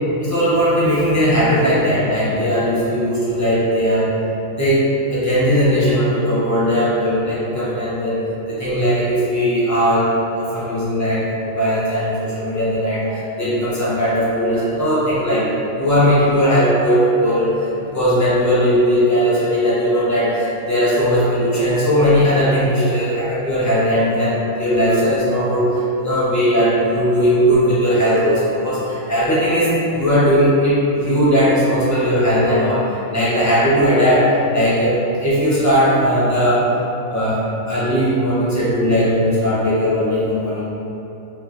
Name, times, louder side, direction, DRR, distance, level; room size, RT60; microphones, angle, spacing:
voice 1, 0.2-4.1 4.5-8.2 8.5-10.1 10.3-15.5 15.8-17.5 17.9-32.8 33.1-36.6 37.1-40.7, equal, 15° left, -9 dB, 0.7 m, -18 dB
4.5 x 2.1 x 3.0 m, 3.0 s
omnidirectional pair, 1.4 m